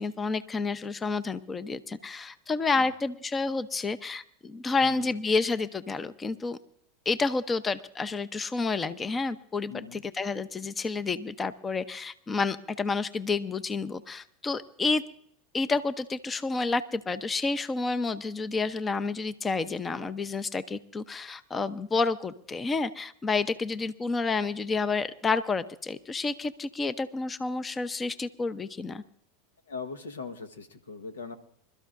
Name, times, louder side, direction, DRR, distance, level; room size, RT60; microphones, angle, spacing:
voice 1, 0.0-6.6 7.1-15.0 15.5-29.0, left 4 dB, 20° left, 14 dB, 0.7 m, -30 dB
voice 2, 4.8-5.1 9.7-10.0 29.7-31.3, left 5 dB, 85° left, 7 dB, 1.3 m, -40 dB
26.5 x 13.0 x 2.6 m, 0.64 s
hypercardioid pair, 95°, 0 cm